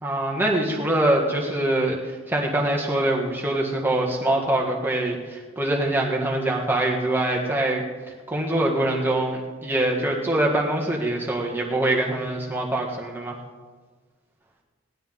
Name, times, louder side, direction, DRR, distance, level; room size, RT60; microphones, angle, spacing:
voice 1, 0.0-7.8 8.3-13.4, right 1 dB, 10° right, -1 dB, 1.6 m, -24 dB
18.5 x 11.5 x 3.7 m, 1.4 s
head